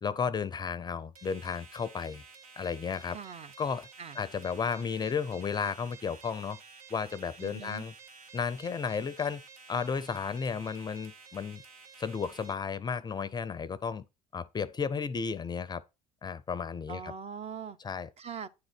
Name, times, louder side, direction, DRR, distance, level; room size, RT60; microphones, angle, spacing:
voice 1, 0.0-2.2 2.6-3.2 3.6-3.9 4.1-6.6 6.9-7.9 8.3-9.4 9.7-11.6 12.0-14.0 14.3-15.8 16.2-17.1 17.8-18.1, left 6 dB, 20° left, 0.5 m, -33 dB
sound 1, 1.1-12.5, right 4 dB, 80° right, 1.2 m, -52 dB
voice 2, 3.1-3.5 4.0-4.2 7.4-7.8 16.9-17.8 18.2-18.5, right 7 dB, 35° right, 0.7 m, -41 dB
9.6 x 3.8 x 5.9 m
figure-of-eight pair, 65°, 19 cm